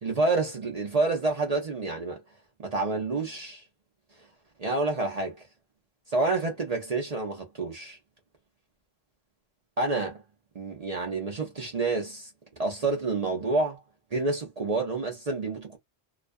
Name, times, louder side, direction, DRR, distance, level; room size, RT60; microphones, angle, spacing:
voice 1, 0.0-2.2 2.6-3.6 4.6-5.4 6.1-8.0 9.8-10.2 10.5-12.3 12.6-13.8 14.1-15.8, right 3 dB, 45° right, 0.6 m, -28 dB
2.4 x 2.2 x 2.5 m
omnidirectional pair, 1.1 m